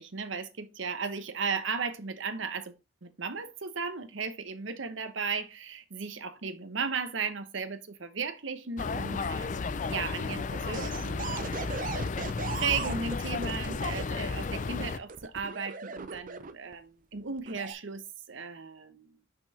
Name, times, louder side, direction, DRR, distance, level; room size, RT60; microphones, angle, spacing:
voice 1, 0.0-2.7 3.0-11.8 12.5-19.2, right 5 dB, 65° right, 0.9 m, -36 dB
sound 1, 8.8-15.0, left 4 dB, 40° left, 0.4 m, -33 dB
sound 2, 10.7-14.1 15.1-16.7 17.4-17.7, right 4 dB, 40° right, 0.6 m, -38 dB
6.0 x 5.3 x 4.1 m
head